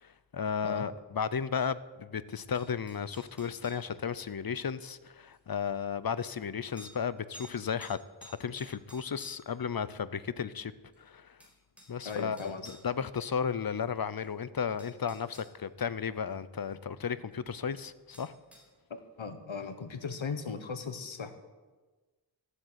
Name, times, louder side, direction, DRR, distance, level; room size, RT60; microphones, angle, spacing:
voice 1, 0.0-10.7 11.0-11.4 11.9-12.4 12.7-18.3, left 6 dB, 50° left, 16 dB, 0.7 m, -34 dB
sound 1, 2.5-3.9 5.3-5.4 6.8-7.0 7.3-7.5 7.8-9.6 10.9-11.0 11.4-12.8 14.2-14.3 14.8-15.5 18.1-18.7, right 1 dB, 5° right, 4.5 m, -52 dB
voice 2, 12.0-12.7 19.2-21.3, left 5 dB, 90° left, 8 dB, 1.3 m, -37 dB
14.5 x 8.1 x 8.1 m, 1.3 s
wide cardioid pair, 65°, 45 cm